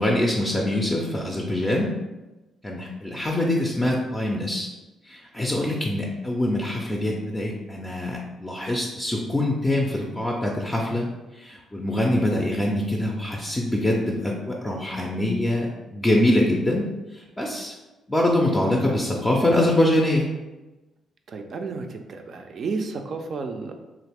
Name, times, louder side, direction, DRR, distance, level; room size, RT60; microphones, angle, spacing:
voice 1, 0.0-1.9 2.6-4.7 5.0-11.1 11.3-16.9 17.1-17.7 18.1-20.3, left 1 dB, 15° left, -2 dB, 0.4 m, -24 dB
voice 2, 21.3-23.7, right 4 dB, 55° right, 5 dB, 0.4 m, -32 dB
2.9 x 2.4 x 3.4 m, 1.1 s
cardioid pair, 90°, 0 cm